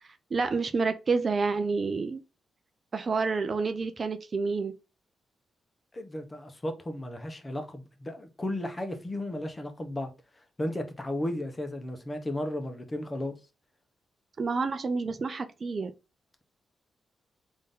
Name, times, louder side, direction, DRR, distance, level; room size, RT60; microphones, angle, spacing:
voice 1, 0.3-2.2 2.9-4.7 14.4-15.9, right 4 dB, 45° right, 0.4 m, -28 dB
voice 2, 5.9-10.1 10.6-13.3, left 1 dB, 25° left, 0.8 m, -34 dB
3.7 x 2.7 x 3.6 m
cardioid pair, 80°, 0 cm